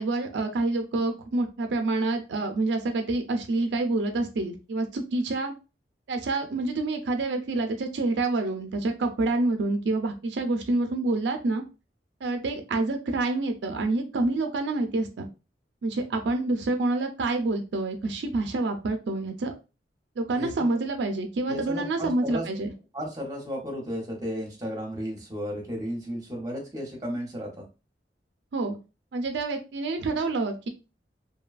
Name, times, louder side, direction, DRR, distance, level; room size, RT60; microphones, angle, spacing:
voice 1, 0.0-5.5 6.1-11.6 12.2-15.3 15.8-19.5 20.2-22.7 28.5-28.8 29.1-30.7, right 2 dB, 80° right, 5 dB, 0.4 m, -27 dB
voice 2, 21.5-22.4 22.9-27.6, equal, 20° right, 0 dB, 0.8 m, -33 dB
2.7 x 2.2 x 2.4 m, 0.30 s
head